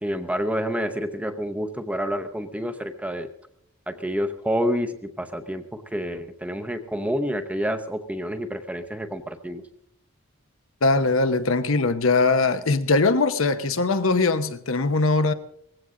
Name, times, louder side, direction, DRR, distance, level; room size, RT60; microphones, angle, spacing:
voice 1, 0.0-3.3 3.9-9.6, equal, 5° right, 0.8 m, -28 dB
voice 2, 10.8-15.3, left 3 dB, 75° left, 0.9 m, -21 dB
18.5 x 15.5 x 3.8 m
head